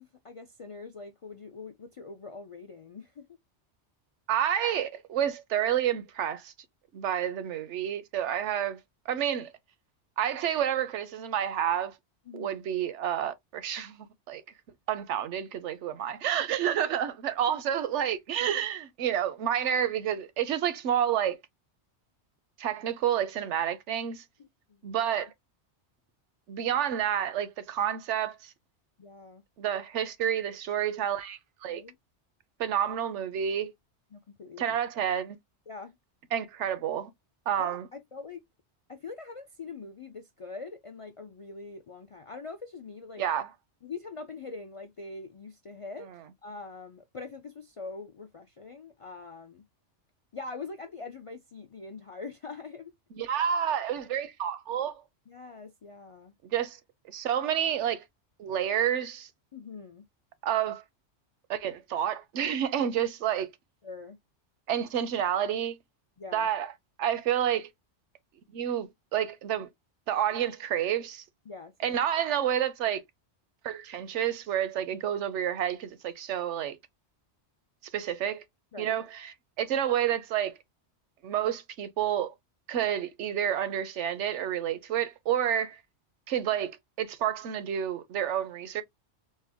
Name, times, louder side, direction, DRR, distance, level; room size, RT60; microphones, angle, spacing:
voice 1, 0.0-3.3 12.3-12.6 24.4-24.8 25.0-25.2 29.0-29.4 31.7-32.0 34.1-34.8 35.7-36.0 37.6-38.4 38.9-43.2 43.8-46.1 46.4-49.6 50.3-52.9 55.3-56.3 59.5-60.1 63.8-64.2 66.2-66.5 71.5-72.0 78.7-79.0, left 4 dB, 50° left, 0.4 m, -43 dB
voice 2, 4.3-6.5 6.9-8.8 9.1-9.5 10.2-11.9 12.3-14.4 14.9-21.4 22.6-24.2 24.8-25.3 26.5-28.4 29.6-31.8 32.6-33.7 34.6-35.4 36.3-37.1 37.5-37.9 43.2-43.5 53.1-55.0 56.4-56.8 57.1-58.0 58.4-59.3 60.4-60.8 61.5-63.5 64.7-65.8 66.3-66.7 67.0-67.7 68.5-69.7 70.1-71.2 71.8-73.0 73.6-76.8 77.9-78.4 78.8-80.5 81.2-82.3 82.7-85.8 86.3-88.8, right 10 dB, 80° right, 1.0 m, -29 dB
4.3 x 2.1 x 3.4 m
omnidirectional pair, 1.2 m